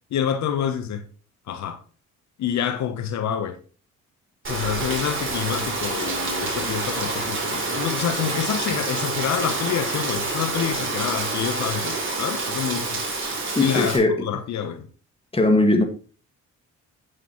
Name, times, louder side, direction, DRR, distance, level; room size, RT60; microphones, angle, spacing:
voice 1, 0.1-1.0 1.5-1.8 2.4-3.6 4.5-13.0 13.6-14.0 14.2-14.9, left 9 dB, 65° left, 0.9 m, -27 dB
Rain, 4.4-14.0, right 3 dB, 40° right, 3.4 m, -27 dB
voice 2, 13.6-14.3 15.3-15.8, left 2 dB, 20° left, 1.7 m, -19 dB
8.4 x 7.7 x 3.0 m
cardioid pair, 90°, 30 cm